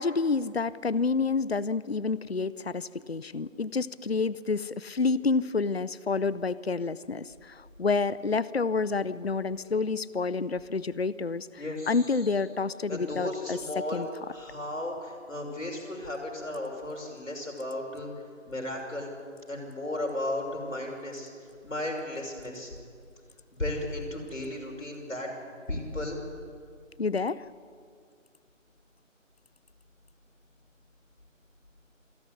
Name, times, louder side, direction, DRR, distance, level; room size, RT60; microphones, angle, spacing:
voice 1, 0.0-13.6 13.9-14.1 27.0-27.4, left 4 dB, 50° left, 18 dB, 0.6 m, -29 dB
voice 2, 11.6-12.3 12.9-14.0 14.3-18.1 18.5-19.1 19.5-21.3 21.6-22.7 23.6-25.3 25.7-26.2, left 1 dB, 75° left, 1 dB, 6.0 m, -35 dB
26.5 x 11.0 x 9.8 m, 2.2 s
figure-of-eight pair, 165°, 39 cm